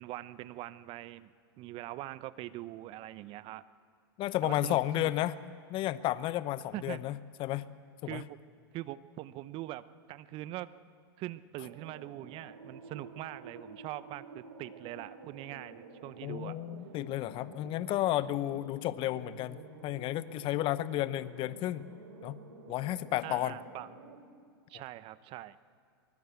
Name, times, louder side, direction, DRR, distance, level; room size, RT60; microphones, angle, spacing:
voice 1, 0.0-3.6 4.4-5.1 6.7-7.0 8.1-8.4 8.7-10.7 11.2-16.6 23.2-23.9 24.7-25.6, right 15 dB, 40° right, 16 dB, 0.9 m, -42 dB
voice 2, 4.2-5.3 5.7-7.7 8.0-8.2 16.2-21.9 22.2-22.4 22.7-23.6, left 14 dB, 40° left, 15 dB, 1.0 m, -32 dB
sound 1, 11.6-24.2, right 3 dB, 80° right, 3.7 m, -50 dB
23.0 x 21.0 x 8.3 m, 2.1 s
hypercardioid pair, 105°, 13 cm